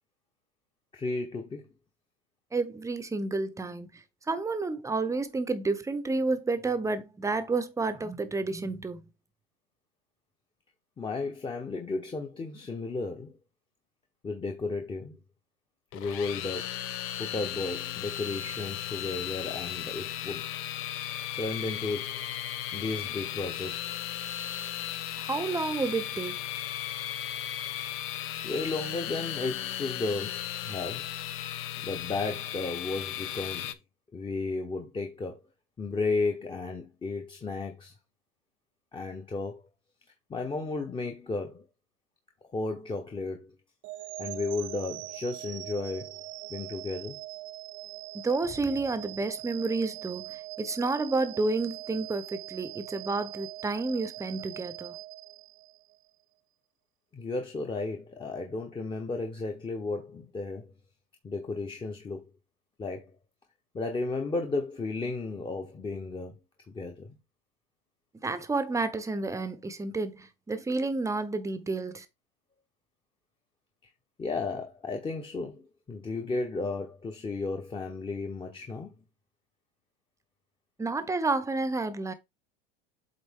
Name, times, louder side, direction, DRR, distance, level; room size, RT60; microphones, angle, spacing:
voice 1, 0.9-1.7 11.0-13.4 14.2-15.2 15.9-16.8 17.2-20.5 21.4-22.2 22.7-23.9 28.4-31.1 31.8-33.8 34.1-35.4 35.8-37.9 38.9-39.6 40.3-41.6 42.5-43.5 44.2-46.1 46.5-47.2 57.1-60.7 61.2-62.3 62.8-63.1 63.7-66.4 66.7-67.2 74.2-78.9, left 3 dB, 15° left, 1.1 m, -34 dB
voice 2, 2.5-9.0 25.2-26.4 48.1-55.0 68.2-72.1 80.8-82.1, right 3 dB, 10° right, 0.8 m, -30 dB
sound 1, 15.9-33.7, left 12 dB, 45° left, 0.8 m, -36 dB
sound 2, 43.8-56.0, right 16 dB, 45° right, 0.7 m, -42 dB
7.9 x 3.9 x 3.6 m
supercardioid pair, 120°, 30 cm